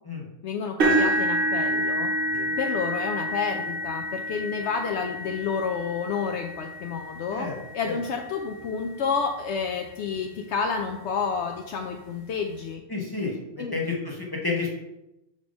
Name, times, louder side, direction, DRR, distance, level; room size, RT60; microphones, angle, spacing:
voice 1, 0.4-2.1 2.6-7.5 7.7-12.8 13.6-13.8, left 5 dB, 70° left, 3 dB, 0.8 m, -30 dB
sound 1, 0.8-8.8 9.5-9.7 10.1-10.2 11.6-11.7, right 1 dB, 60° right, 1.5 m, -28 dB
voice 2, 12.9-14.7, left 4 dB, 20° left, -2 dB, 0.9 m, -30 dB
6.6 x 3.4 x 5.1 m, 0.92 s
omnidirectional pair, 1.3 m